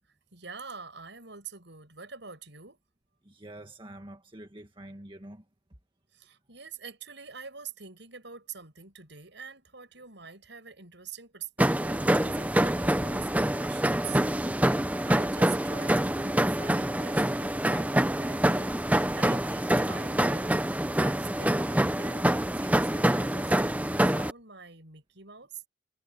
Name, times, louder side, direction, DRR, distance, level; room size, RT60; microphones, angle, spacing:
voice 1, 0.3-2.8 6.1-22.3 22.6-25.7, right 6 dB, 70° right, 7.0 m, -46 dB
voice 2, 3.2-5.4, right 1 dB, 25° right, 1.7 m, -46 dB
sound 1, 11.6-24.3, right 1 dB, 10° right, 0.7 m, -26 dB
head